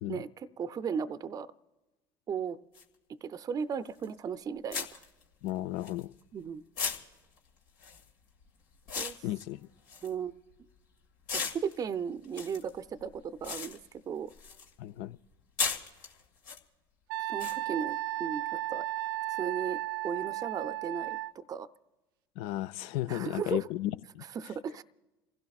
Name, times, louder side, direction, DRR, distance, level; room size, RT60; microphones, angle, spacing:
voice 1, 0.1-1.5 2.3-2.6 3.2-5.0 6.3-6.6 9.0-9.1 10.0-10.3 11.3-13.8 14.1-14.3 17.3-18.4 18.7-18.8 19.4-19.8 20.0-21.7 23.1-23.7 24.2-24.8, right 7 dB, 35° right, 0.5 m, -36 dB
sound 1, 2.7-2.8 4.0-4.2 4.7-6.4 6.8-10.8 11.2-14.7 15.0-16.6 17.4-17.6, left 5 dB, 85° left, 1.9 m, -37 dB
voice 2, 5.4-6.1 9.2-9.6 14.8-15.2 22.4-24.2, left 15 dB, 65° left, 0.4 m, -34 dB
Wind instrument woodwind instrument, 17.1-21.3, right 17 dB, 85° right, 0.4 m, -34 dB
28.5 x 16.0 x 2.4 m
hypercardioid pair, 85°, 11 cm